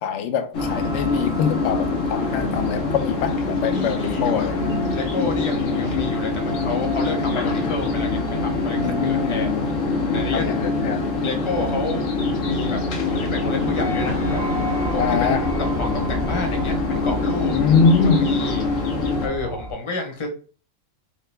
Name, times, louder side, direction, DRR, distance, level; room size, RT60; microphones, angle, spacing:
voice 1, 0.0-4.6 8.8-9.3 10.3-11.0 15.0-15.4 17.5-18.3, left 5 dB, 70° left, 0.9 m, -23 dB
sound 1, 0.5-19.3, left 3 dB, 90° left, 1.2 m, -24 dB
sound 2, 0.6-19.7, right 1 dB, 35° right, 0.8 m, -34 dB
voice 2, 3.7-4.5 4.9-9.5 10.1-10.5 11.2-12.0 12.4-12.8 13.0-14.4 14.9-17.5 18.0-18.7 19.2-20.3, left 3 dB, 25° left, 0.8 m, -30 dB
3.2 x 3.0 x 3.3 m
omnidirectional pair, 1.3 m